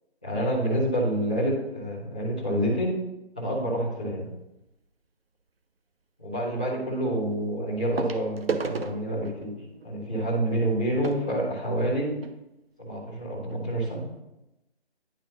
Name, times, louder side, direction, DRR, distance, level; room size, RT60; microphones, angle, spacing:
voice 1, 0.2-2.9 3.3-4.3 6.2-9.5 9.8-12.1 12.8-14.0, right 1 dB, 5° left, -10 dB, 0.6 m, -28 dB
sound 1, 4.4-4.7 6.4-6.5 8.0-12.4 13.2-13.3 13.5-13.6 14.2-14.3, right 5 dB, 65° right, 0.7 m, -36 dB
10.5 x 5.2 x 2.8 m, 0.94 s
figure-of-eight pair, 160°, 32 cm